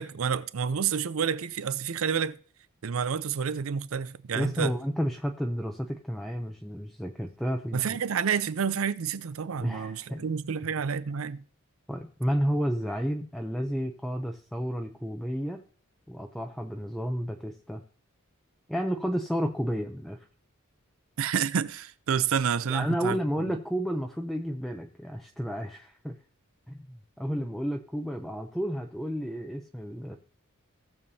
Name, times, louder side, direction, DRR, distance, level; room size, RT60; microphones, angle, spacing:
voice 1, 0.0-2.4 2.8-4.7 7.7-11.4 21.2-23.5, right 7 dB, 70° right, 0.5 m, -29 dB
voice 2, 4.3-8.0 9.6-10.2 11.9-15.6 16.1-17.8 18.7-20.3 22.7-26.1 26.7-30.2, equal, ahead, 0.5 m, -31 dB
17.5 x 7.0 x 2.7 m
head